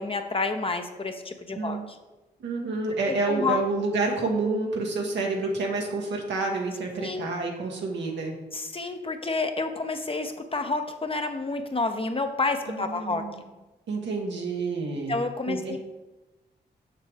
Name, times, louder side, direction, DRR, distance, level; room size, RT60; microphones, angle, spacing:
voice 1, 0.0-1.8 3.1-3.6 7.0-7.3 8.5-13.2 15.1-15.8, left 3 dB, 30° left, 6 dB, 0.8 m, -29 dB
voice 2, 1.6-1.9 2.4-8.3 12.7-13.4 13.9-15.2 15.5-15.8, right 3 dB, 85° right, 0 dB, 1.3 m, -29 dB
6.7 x 6.0 x 3.4 m, 1.1 s
cardioid pair, 55°, 18 cm